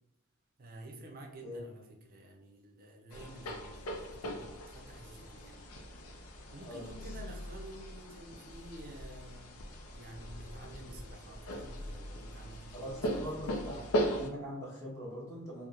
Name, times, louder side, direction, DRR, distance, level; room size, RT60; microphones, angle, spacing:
voice 1, 0.6-5.6 6.5-9.7 9.9-13.9, right 1 dB, 40° right, 2 dB, 0.5 m, -51 dB
sound 1, 3.1-14.3, equal, 80° left, 0.4 m, -39 dB
voice 2, 12.7-15.7, equal, 15° left, -6 dB, 0.7 m, -42 dB
2.9 x 2.0 x 2.4 m, 0.82 s
head